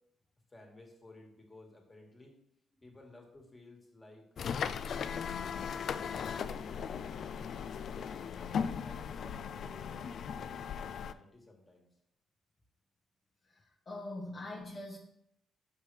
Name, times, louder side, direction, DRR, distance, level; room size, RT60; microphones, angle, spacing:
voice 1, 0.5-2.4 2.8-6.1 7.0-8.1 8.8-10.7 11.0-11.9 14.4-14.5, left 2 dB, 20° left, 0 dB, 1.7 m, -56 dB
sound 1, 4.4-11.1, left 7 dB, 60° left, 0.3 m, -37 dB
voice 2, 13.5-15.0, left 2 dB, 40° left, -2 dB, 1.0 m, -43 dB
6.5 x 5.4 x 3.3 m, 0.75 s
cardioid pair, 90°, 0 cm